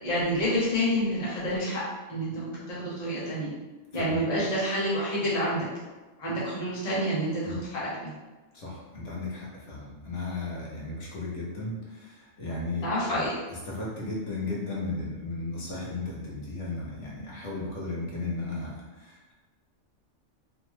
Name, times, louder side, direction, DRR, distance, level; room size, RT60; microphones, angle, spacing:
voice 1, 0.0-1.8 2.1-3.5 3.9-5.7 6.2-8.1 12.8-13.3, equal, 40° left, -7 dB, 0.9 m, -28 dB
voice 2, 8.5-12.9 13.2-19.3, left 2 dB, 75° left, -5 dB, 1.2 m, -35 dB
2.8 x 2.1 x 3.1 m, 1.2 s
omnidirectional pair, 1.2 m